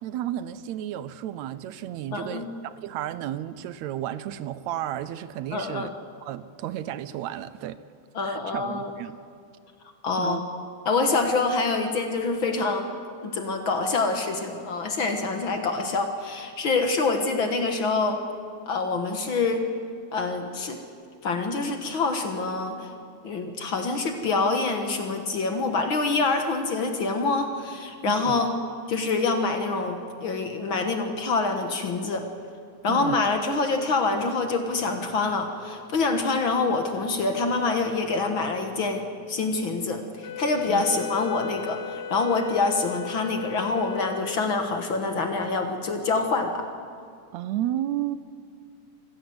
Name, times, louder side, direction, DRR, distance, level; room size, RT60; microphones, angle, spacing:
voice 1, 0.0-5.9 6.2-7.8 8.2-9.2 10.2-10.4 28.1-28.4 32.9-33.2 40.7-40.8 47.3-48.2, right 12 dB, 80° right, 15 dB, 1.8 m, -32 dB
voice 2, 2.1-2.5 5.5-5.9 8.2-8.9 10.0-10.4 10.9-12.9 13.2-18.2 18.7-19.6 20.1-20.8 21.2-22.9 23.2-28.5 28.9-32.3 32.8-46.7, left 3 dB, 50° left, 5 dB, 1.8 m, -26 dB
Wind instrument woodwind instrument, 40.2-44.8, left 10 dB, 75° left, 2.4 m, -36 dB
26.0 x 15.5 x 7.9 m, 2.4 s
omnidirectional pair, 3.3 m